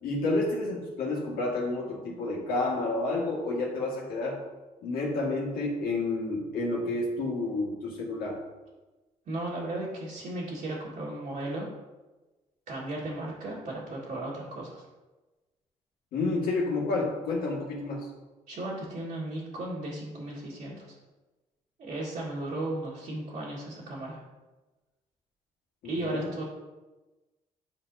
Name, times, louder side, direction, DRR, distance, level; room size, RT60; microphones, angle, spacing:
voice 1, 0.0-4.4 4.8-8.4 16.1-18.1 25.8-26.3, left 2 dB, 90° left, -3 dB, 1.7 m, -30 dB
voice 2, 9.3-11.7 12.7-14.8 18.5-21.0 21.8-24.2 25.8-26.4, right 2 dB, 65° right, -7 dB, 1.7 m, -35 dB
9.7 x 4.2 x 2.7 m, 1.2 s
cardioid pair, 95°, 15 cm